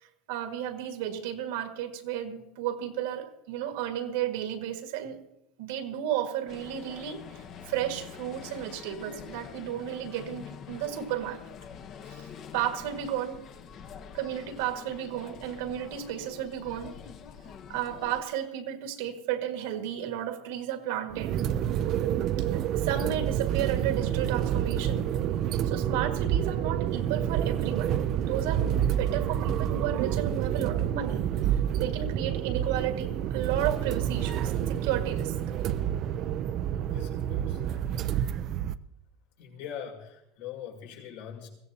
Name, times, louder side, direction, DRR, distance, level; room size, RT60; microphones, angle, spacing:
voice 1, 0.3-5.2 5.6-11.4 12.1-13.5 14.1-17.0 17.7-21.4 22.5-25.1 25.6-31.3 31.8-35.4, right 10 dB, 80° right, 1.8 m, -33 dB
sound 1, 6.5-18.2, left 7 dB, 40° left, 1.0 m, -46 dB
sound 2, 21.1-38.7, right 10 dB, 45° right, 0.5 m, -28 dB
voice 2, 36.8-38.2 39.4-41.5, left 8 dB, 80° left, 6.2 m, -43 dB
22.0 x 15.5 x 2.9 m
supercardioid pair, 130°, 0 cm